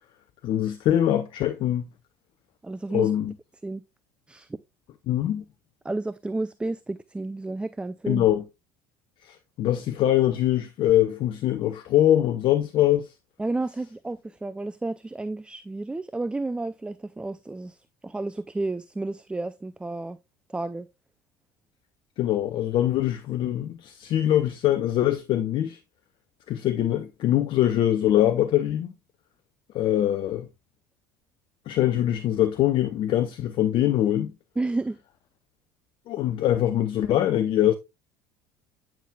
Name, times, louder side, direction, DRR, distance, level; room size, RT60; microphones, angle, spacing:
voice 1, 0.4-1.9 2.9-3.3 5.1-5.4 8.1-8.4 9.2-13.1 22.2-25.8 26.5-28.9 29.7-30.5 31.7-34.3 36.1-37.7, left 12 dB, 50° left, 0.7 m, -23 dB
voice 2, 2.6-3.1 3.6-3.8 4.3-4.5 5.8-8.3 13.4-17.8 18.0-20.2 20.5-20.9 34.6-35.0, right 2 dB, 10° right, 0.4 m, -31 dB
9.0 x 5.9 x 2.3 m
hypercardioid pair, 65°, 11 cm